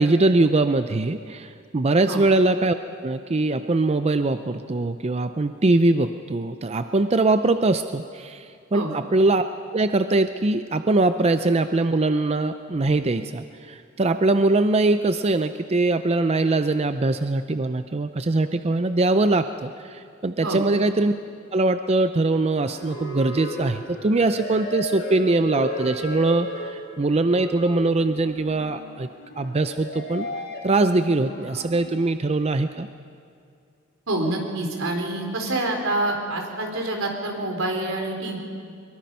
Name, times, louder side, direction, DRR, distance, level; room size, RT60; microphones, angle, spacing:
voice 1, 0.0-2.7 3.0-8.5 8.7-9.4 9.7-21.1 21.5-29.1 29.4-30.3 30.6-32.9, right 2 dB, 30° right, 9 dB, 0.5 m, -22 dB
sound 1, 22.3-31.7, left 1 dB, 60° left, 4.3 m, -35 dB
voice 2, 34.1-38.4, right 2 dB, 85° right, 2 dB, 3.9 m, -27 dB
23.5 x 22.5 x 5.5 m, 2.4 s
head